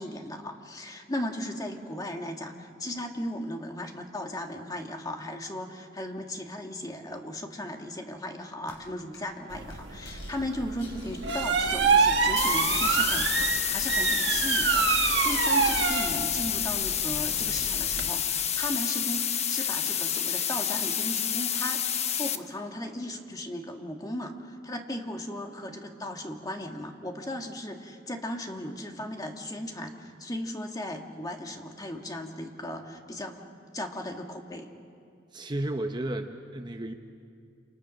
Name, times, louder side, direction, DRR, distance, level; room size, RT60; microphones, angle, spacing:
voice 1, 0.0-33.4 33.7-34.7, left 1 dB, 20° left, 3 dB, 1.8 m, -36 dB
sound 1, 8.7-8.8 9.1-9.4 9.7-10.3 10.6-13.2, left 4 dB, 80° left, 6.5 m, -51 dB
sound 2, 9.5-18.1, right 5 dB, 65° right, 1.4 m, -27 dB
sound 3, 12.4-22.4, left 9 dB, 35° left, 0.9 m, -29 dB
voice 2, 35.3-36.9, right 1 dB, 25° right, 6 dB, 0.8 m, -33 dB
29.0 x 28.5 x 6.4 m, 2.4 s
head